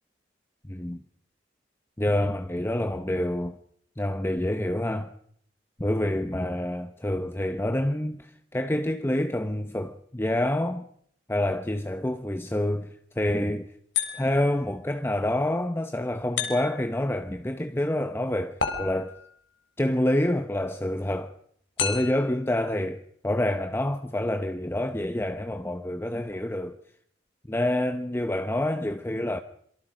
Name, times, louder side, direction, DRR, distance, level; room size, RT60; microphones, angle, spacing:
voice 1, 0.7-1.0 2.0-3.6 4.0-5.1 5.8-10.9 11.3-12.9 13.2-13.7 14.1-19.2 19.8-21.3 21.8-26.8 27.5-29.4, left 1 dB, 15° left, 0.9 m, -27 dB
sound 1, 13.9-14.6 16.4-17.0 18.6-19.3 21.8-22.4, left 6 dB, 80° left, 4.7 m, -31 dB
27.0 x 24.0 x 5.1 m
head